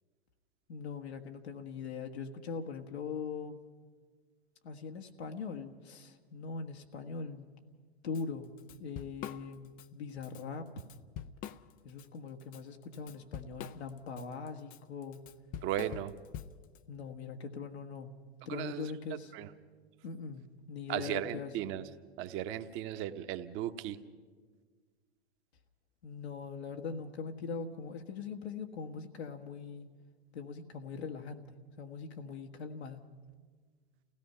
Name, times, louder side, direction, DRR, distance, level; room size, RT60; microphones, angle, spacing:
voice 1, 0.7-3.6 4.6-7.5 8.0-8.5 8.8-10.7 11.8-15.2 16.9-18.1 18.4-19.3 20.0-21.5 26.0-29.9 30.3-31.4 31.8-33.0, left 5 dB, 75° left, 3 dB, 1.6 m, -41 dB
Drum kit / Drum, 8.1-8.2 8.6-9.9 10.2-10.4 10.8-12.0 12.4-16.8, left 9 dB, 25° left, 0.5 m, -45 dB
voice 2, 15.6-16.1 18.5-18.9 19.3-19.5 20.9-21.8 22.2-24.0, right 12 dB, 40° right, 9 dB, 1.1 m, -36 dB
29.0 x 17.0 x 5.7 m, 1.5 s
hypercardioid pair, 105°, 32 cm